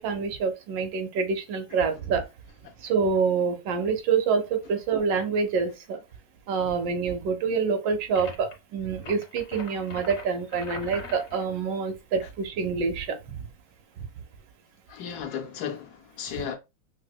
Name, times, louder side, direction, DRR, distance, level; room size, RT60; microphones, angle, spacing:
voice 1, 0.0-2.3 2.8-6.0 6.5-13.5 14.0-14.1, right 5 dB, 90° right, 1.4 m, -27 dB
sound 1, 8.1-8.5 9.0-11.5, left 5 dB, 55° left, 0.9 m, -41 dB
voice 2, 14.9-16.6, left 8 dB, 70° left, 1.0 m, -35 dB
4.7 x 2.1 x 2.2 m
omnidirectional pair, 1.9 m